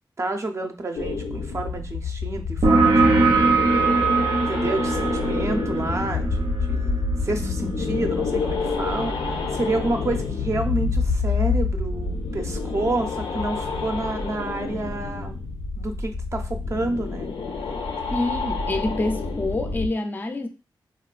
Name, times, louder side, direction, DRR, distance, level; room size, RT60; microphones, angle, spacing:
voice 1, 0.2-3.3 4.4-15.4 15.8-17.3, right 2 dB, 35° right, 0.5 m, -29 dB
sound 1, 1.0-19.9, left 4 dB, 85° left, 0.5 m, -28 dB
sound 2, 2.6-9.9, right 3 dB, 85° right, 0.7 m, -23 dB
voice 2, 18.1-20.5, left 2 dB, 20° left, 0.4 m, -27 dB
3.9 x 2.2 x 2.3 m
wide cardioid pair, 130°, 8 cm